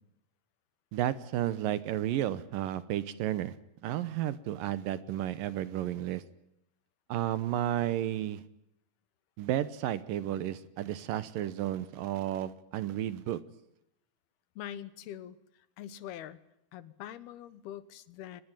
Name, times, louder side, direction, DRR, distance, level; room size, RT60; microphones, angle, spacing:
voice 1, 0.9-3.5 3.8-6.2 7.1-8.4 9.4-13.4, right 12 dB, 70° right, 16 dB, 2.6 m, -32 dB
voice 2, 14.6-16.4 16.7-18.4, left 11 dB, 85° left, 16 dB, 3.3 m, -44 dB
24.0 x 20.5 x 9.1 m, 0.79 s
omnidirectional pair, 4.4 m